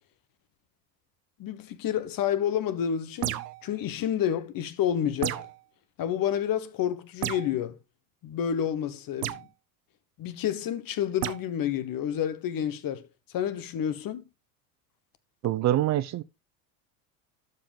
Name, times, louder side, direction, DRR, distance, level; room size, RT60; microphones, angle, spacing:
voice 1, 1.4-5.5 6.0-7.8 8.2-9.5 10.2-13.1 13.3-14.2, left 9 dB, 45° left, 1.3 m, -29 dB
sound 1, 3.2-3.7 5.2-5.6 7.2-7.5 9.2-9.5 11.2-11.4, right 15 dB, 80° right, 0.8 m, -32 dB
voice 2, 15.4-16.2, right 13 dB, 35° right, 0.6 m, -25 dB
12.0 x 5.3 x 3.5 m
hypercardioid pair, 80°, 48 cm